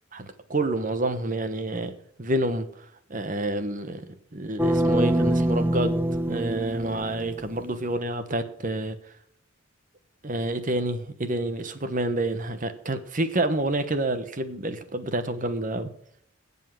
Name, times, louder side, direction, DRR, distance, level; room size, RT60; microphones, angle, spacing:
voice 1, 0.1-6.0 6.3-9.0 10.2-15.9, right 2 dB, 40° right, 1.1 m, -28 dB
sound 1, 4.6-7.6, right 1 dB, 10° right, 0.5 m, -24 dB
16.5 x 5.6 x 6.3 m
head